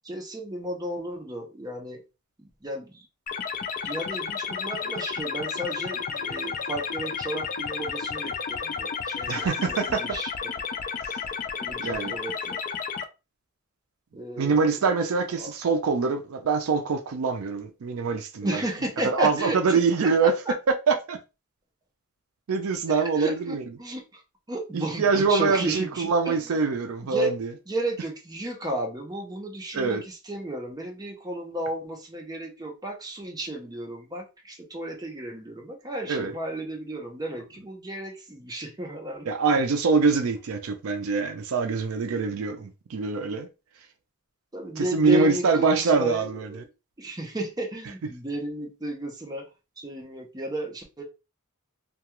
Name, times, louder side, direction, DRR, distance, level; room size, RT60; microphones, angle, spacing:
voice 1, 0.0-2.0 2.6-2.9 3.8-10.3 11.6-12.6 14.1-14.8 15.4-15.5 18.4-20.1 22.9-24.2 24.5-26.4 27.0-27.3 27.7-39.3 44.5-46.7 47.0-49.4 49.8-51.0, right 1 dB, 20° right, 0.6 m, -33 dB
sound 1, 3.3-13.0, left 6 dB, 40° left, 0.3 m, -32 dB
voice 2, 9.3-10.0 11.0-11.2 11.8-12.2 14.4-18.6 19.0-20.4 20.7-21.2 22.5-23.6 24.7-27.5 29.7-30.0 36.0-36.3 39.2-43.5 44.8-46.6, right 4 dB, 70° right, 0.4 m, -24 dB
2.3 x 2.3 x 2.9 m
head